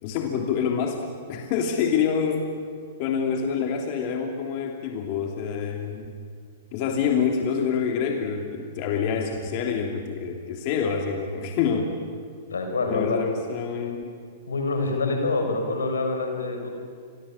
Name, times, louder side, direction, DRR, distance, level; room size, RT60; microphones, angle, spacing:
voice 1, 0.0-2.5 3.0-6.1 6.7-11.9 12.9-14.1, left 6 dB, 50° left, 3 dB, 3.0 m, -26 dB
voice 2, 12.5-13.2 14.5-16.7, left 3 dB, 90° left, 4 dB, 6.1 m, -26 dB
28.5 x 23.5 x 8.8 m, 2.1 s
hypercardioid pair, 115°, 0 cm